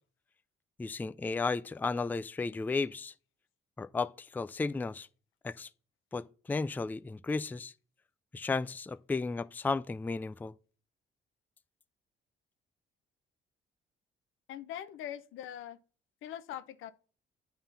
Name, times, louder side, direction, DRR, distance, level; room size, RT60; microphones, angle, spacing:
voice 1, 0.8-3.1 3.8-5.1 5.4-5.7 6.1-7.7 8.3-10.5, left 4 dB, 10° left, 0.3 m, -34 dB
voice 2, 14.5-15.8 16.2-16.9, left 11 dB, 85° left, 0.7 m, -42 dB
8.8 x 3.7 x 5.6 m
cardioid pair, 90°, 20 cm